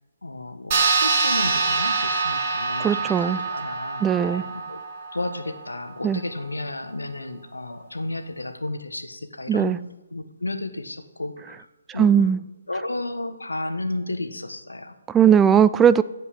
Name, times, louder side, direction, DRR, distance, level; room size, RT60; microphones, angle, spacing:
voice 1, 0.2-4.8 5.1-9.8 10.1-11.7 11.9-12.4 12.7-15.0, left 2 dB, 80° left, 8 dB, 1.3 m, -32 dB
sound 1, 0.7-5.6, right 4 dB, 35° right, 2.8 m, -25 dB
voice 2, 2.8-3.4 4.0-4.4 6.0-6.2 9.5-9.8 12.0-12.4 15.1-16.0, right 8 dB, 10° right, 14 dB, 0.3 m, -18 dB
15.0 x 5.3 x 8.2 m, 1.1 s
figure-of-eight pair, 140°, 0 cm